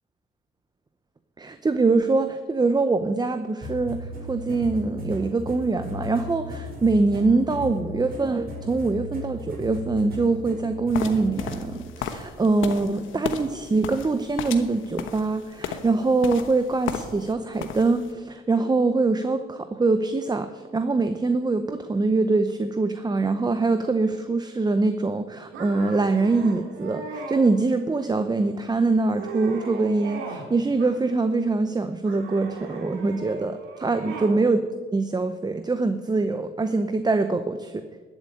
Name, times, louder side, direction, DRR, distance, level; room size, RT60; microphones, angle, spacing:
voice 1, 1.4-37.8, right 3 dB, 20° right, 10 dB, 0.7 m, -24 dB
sound 1, 3.6-11.7, left 1 dB, 50° right, 4.8 m, -37 dB
sound 2, 10.9-17.3 17.6-18.1, left 7 dB, 85° left, 1.2 m, -34 dB
sound 3, 25.5-27.4 28.0-28.5 28.9-30.5 30.8-31.5 32.0-34.4, right 4 dB, 90° right, 2.5 m, -38 dB
12.5 x 7.7 x 8.6 m, 1.4 s
cardioid pair, 90°, 20 cm